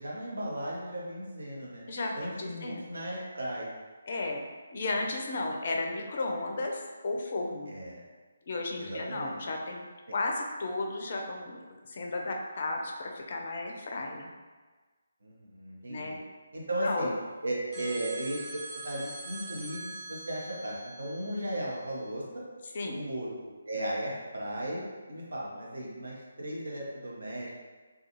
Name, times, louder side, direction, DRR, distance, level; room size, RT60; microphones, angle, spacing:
voice 1, 0.0-1.8 2.2-3.7 7.7-8.0 8.8-9.4 15.2-16.2 16.5-17.1 17.4-18.4 18.7-22.4 22.9-24.8 25.1-27.6, right 1 dB, 65° right, -4 dB, 0.7 m, -36 dB
voice 2, 1.9-2.9 4.1-4.4 4.7-7.8 8.5-9.8 10.1-14.3 15.9-16.2 16.8-17.1 17.8-17.9 22.6-23.0, left 2 dB, 40° left, 1 dB, 0.4 m, -34 dB
sound 1, 17.7-22.1, right 2 dB, 20° right, 0.5 m, -44 dB
2.3 x 2.3 x 2.9 m, 1.4 s
figure-of-eight pair, 145°, 0 cm